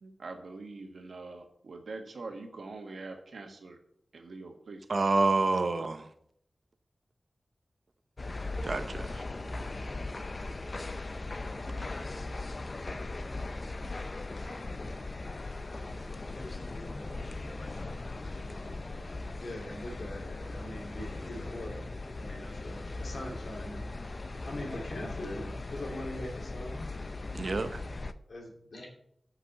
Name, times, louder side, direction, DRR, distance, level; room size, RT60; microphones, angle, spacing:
voice 1, 0.0-3.8 4.1-4.8, right 3 dB, 85° right, 1.5 m, -44 dB
voice 2, 4.9-6.1 8.6-9.2 27.3-27.8, right 3 dB, 60° right, 0.8 m, -28 dB
sound 1, 8.2-28.1, left 2 dB, 45° left, 0.5 m, -39 dB
voice 3, 15.6-16.4 16.7-17.3 18.4-18.9 19.4-21.8 22.2-23.9 24.3-26.9 28.3-28.9, left 1 dB, 75° left, 2.7 m, -42 dB
7.9 x 5.9 x 7.0 m
wide cardioid pair, 85°, 0 cm